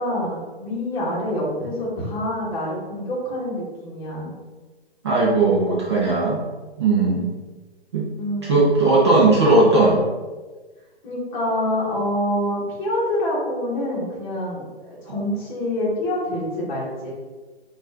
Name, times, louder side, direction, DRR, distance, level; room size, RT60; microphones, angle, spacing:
voice 1, 0.0-4.3 8.1-8.9 11.0-17.1, left 1 dB, 20° left, -7 dB, 1.1 m, -26 dB
voice 2, 5.0-6.4 6.8-7.3 7.9-8.1 8.4-10.0, right 2 dB, 25° right, -5 dB, 0.5 m, -17 dB
4.1 x 2.5 x 3.2 m, 1.3 s
figure-of-eight pair, 135°, 32 cm